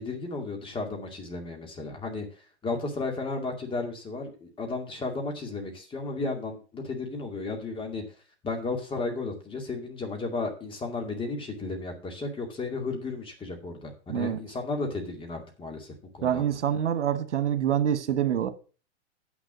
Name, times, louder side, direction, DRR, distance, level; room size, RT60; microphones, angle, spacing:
voice 1, 0.0-2.3 2.6-8.0 8.4-16.5, left 3 dB, 15° left, 2.3 m, -34 dB
voice 2, 16.2-18.5, right 9 dB, 80° right, 1.4 m, -26 dB
8.4 x 6.2 x 6.1 m
hypercardioid pair, 135°, 35 cm